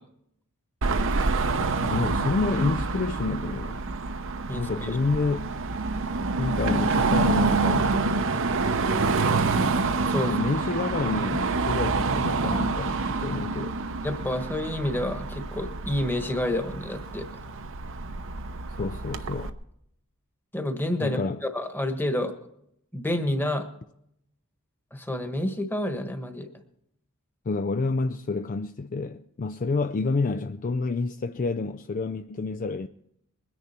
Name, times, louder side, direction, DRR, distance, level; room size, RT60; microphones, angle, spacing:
Car passing by / Traffic noise roadway noise / Engine, 0.8-19.5, right 3 dB, 60° right, 0.8 m, -27 dB
voice 1, 1.9-3.8 4.5-5.5 6.4-8.0 10.2-13.8 18.7-19.5 21.0-21.5 27.5-32.9, left 3 dB, 40° left, 0.4 m, -29 dB
voice 2, 4.5-5.0 10.0-10.4 14.0-17.3 20.5-21.2 21.5-22.3 22.9-23.7 24.9-26.5, left 1 dB, 10° left, 1.3 m, -29 dB
22.0 x 10.5 x 4.3 m
head